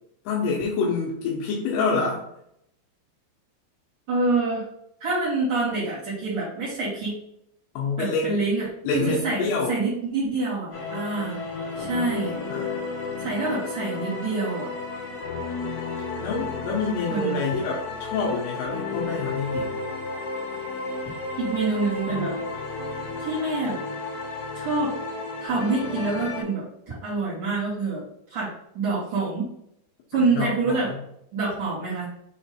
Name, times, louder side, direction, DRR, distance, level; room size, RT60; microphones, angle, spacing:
voice 1, 0.3-2.2 7.8-8.3 8.9-9.8 11.7-12.8 16.2-19.8 30.3-31.0, left 4 dB, 85° left, -3 dB, 3.4 m, -27 dB
voice 2, 4.1-4.7 5.0-7.1 8.0-8.7 8.9-11.4 11.7-12.4 13.2-14.7 17.1-17.4 21.4-22.3 23.2-23.8 24.5-25.0 25.4-28.0 28.3-28.5 28.7-29.5 30.1-30.9 31.3-32.1, right 3 dB, 40° right, -11 dB, 1.7 m, -26 dB
sound 1, 10.7-26.4, left 3 dB, 50° left, 3.3 m, -32 dB
7.5 x 3.0 x 4.3 m, 0.77 s
omnidirectional pair, 5.5 m